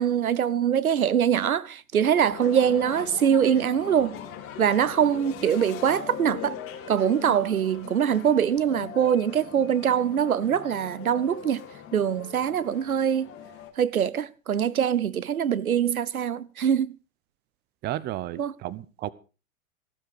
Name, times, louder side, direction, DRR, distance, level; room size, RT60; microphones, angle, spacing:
voice 1, 0.0-4.2 4.6-6.6 6.9-11.6 11.9-13.3 13.8-16.9 18.4-18.5, right 8 dB, 85° right, 0.8 m, -23 dB
sound 1, 2.1-13.7, left 9 dB, 30° left, 3.3 m, -41 dB
voice 2, 17.8-19.1, right 14 dB, 25° right, 0.8 m, -33 dB
15.0 x 12.5 x 4.8 m
figure-of-eight pair, 105°, 42 cm